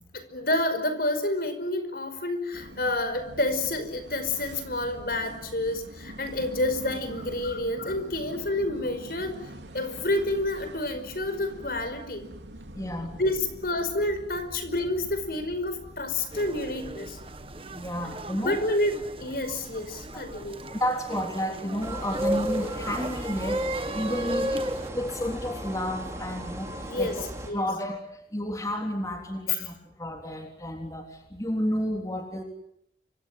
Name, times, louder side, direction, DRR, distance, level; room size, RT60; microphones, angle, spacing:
voice 1, 0.1-9.5 9.7-12.2 13.2-17.2 18.4-20.6 26.7-27.2 27.4-27.6 29.6-29.7, left 1 dB, 55° left, 10 dB, 5.1 m, -29 dB
sound 1, 2.5-20.9, right 1 dB, 90° right, 3.1 m, -45 dB
voice 2, 12.8-13.2 17.7-18.6 20.1-20.3 20.7-27.3 27.5-32.4, equal, 20° left, 3 dB, 3.5 m, -31 dB
sound 2, 16.3-24.9, right 3 dB, 30° right, 1.6 m, -40 dB
sound 3, 21.8-27.5, equal, 15° right, 4.8 m, -32 dB
29.5 x 26.0 x 7.5 m, 0.72 s
head